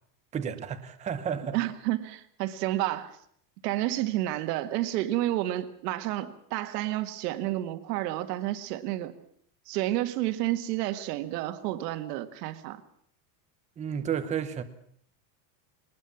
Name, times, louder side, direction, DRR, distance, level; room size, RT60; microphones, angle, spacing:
voice 1, 0.3-1.6 13.8-14.6, right 8 dB, 15° right, 0.9 m, -32 dB
voice 2, 1.5-3.1 3.6-9.1 9.7-12.8, right 15 dB, 70° right, 1.9 m, -30 dB
21.0 x 19.5 x 7.2 m
cardioid pair, 180°, 49 cm